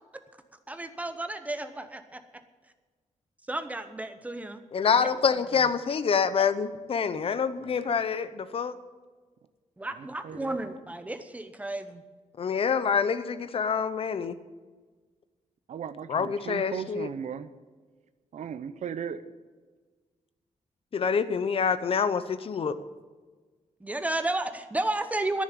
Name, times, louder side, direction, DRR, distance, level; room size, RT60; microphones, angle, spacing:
voice 1, 0.7-2.2 3.5-4.6 5.0-5.1 5.5-5.6 9.8-12.0 23.8-25.4, right 2 dB, 10° right, 8 dB, 0.9 m, -32 dB
voice 2, 4.7-8.7 12.4-14.4 16.1-17.1 20.9-22.8, left 6 dB, 50° left, 13 dB, 0.7 m, -26 dB
voice 3, 10.2-10.6 15.7-17.5 18.3-19.2, right 8 dB, 70° right, 12 dB, 0.7 m, -37 dB
10.5 x 10.0 x 9.1 m, 1.4 s
wide cardioid pair, 170°, 13 cm